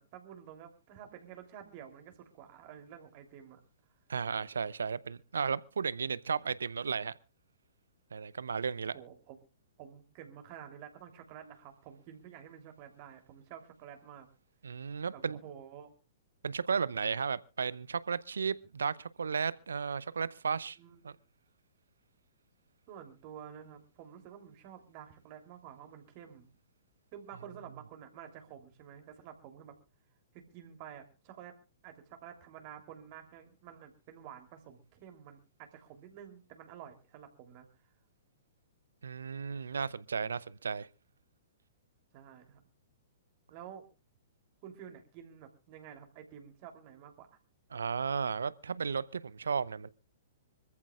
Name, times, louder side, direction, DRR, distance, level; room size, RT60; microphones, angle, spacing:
voice 1, 0.0-3.6 6.4-6.5 8.9-9.3 9.8-14.3 15.1-15.9 20.8-21.1 22.9-26.5 27.1-29.7 30.3-31.6 31.8-37.7 42.1-42.6 43.5-43.8 44.6-47.3, right 9 dB, 40° right, 3.2 m, -50 dB
voice 2, 4.1-7.1 8.1-8.9 14.6-15.4 16.4-20.8 21.0-21.2 39.0-40.9 47.7-49.9, right 6 dB, 70° right, 0.7 m, -34 dB
25.5 x 14.5 x 2.4 m
figure-of-eight pair, 115°, 0 cm